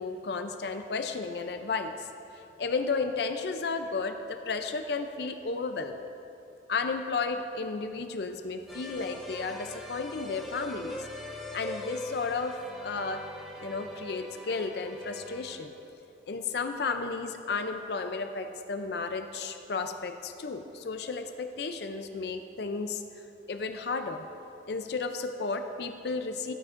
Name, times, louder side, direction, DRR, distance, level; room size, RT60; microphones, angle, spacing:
voice 1, 0.0-2.1 2.6-6.1 6.7-11.1 11.5-13.2 13.6-15.7 16.3-23.0 23.5-24.2 24.7-26.5, left 4 dB, 65° left, 7 dB, 0.5 m, -33 dB
sound 1, 8.7-15.9, left 2 dB, ahead, 1.1 m, -42 dB
15.0 x 9.6 x 2.5 m, 2.7 s
head